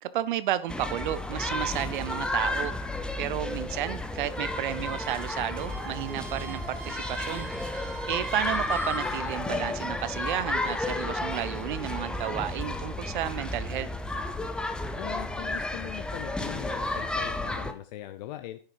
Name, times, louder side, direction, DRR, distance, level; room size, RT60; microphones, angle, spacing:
voice 1, 0.0-2.7 3.2-7.5 8.1-13.9, right 12 dB, 50° right, 15 dB, 0.8 m, -32 dB
sound 1, 0.7-17.7, left 2 dB, 5° left, 0.5 m, -32 dB
Bowed string instrument, 4.3-9.3, right 5 dB, 25° right, 2.3 m, -44 dB
voice 2, 15.0-18.6, left 14 dB, 40° left, 9 dB, 0.7 m, -40 dB
10.5 x 6.2 x 4.7 m, 0.42 s
hypercardioid pair, 120°, 32 cm